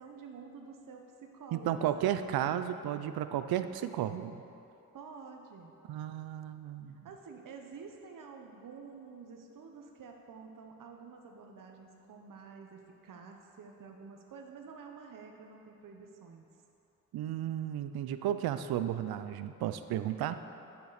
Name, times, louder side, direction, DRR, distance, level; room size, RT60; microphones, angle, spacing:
voice 1, 0.0-2.3 4.9-5.7 7.0-16.5 20.2-20.3, right 5 dB, 60° right, 2 dB, 0.9 m, -49 dB
voice 2, 1.5-4.4 5.9-7.1 17.1-20.4, right 11 dB, 80° right, 11 dB, 0.5 m, -33 dB
9.3 x 6.8 x 4.1 m, 2.8 s
supercardioid pair, 50°, 36 cm